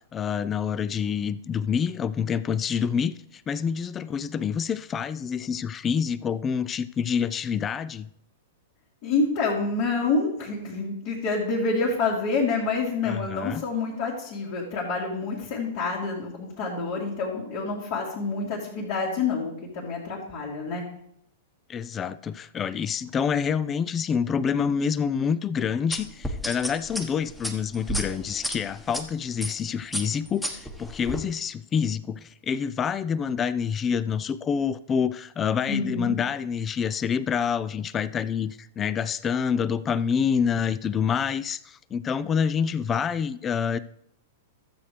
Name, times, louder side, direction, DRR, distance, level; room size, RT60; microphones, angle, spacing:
voice 1, 0.1-3.2 3.5-8.1 13.0-13.6 21.7-26.1 26.4-41.6 41.9-43.8, left 7 dB, 25° left, 16 dB, 0.4 m, -27 dB
voice 2, 9.0-20.8 35.7-36.1, left 4 dB, 50° left, -6 dB, 2.6 m, -27 dB
sound 1, 25.9-29.0 29.4-29.6 29.9-31.2, equal, 5° left, 1.2 m, -32 dB
13.0 x 7.9 x 3.4 m, 0.72 s
hypercardioid pair, 110°, 0 cm